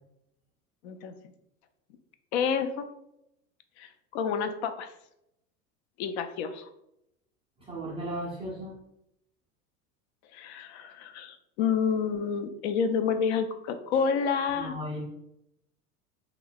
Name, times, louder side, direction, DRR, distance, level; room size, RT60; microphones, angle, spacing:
voice 1, 0.8-1.1 2.3-2.9 3.8-4.9 6.0-6.7 10.3-14.7, left 6 dB, 50° left, 9 dB, 0.4 m, -29 dB
voice 2, 7.6-8.7 13.9-14.0 14.5-15.0, right 1 dB, 15° right, -6 dB, 0.4 m, -36 dB
2.6 x 2.2 x 3.8 m, 0.82 s
figure-of-eight pair, 85°, 45 cm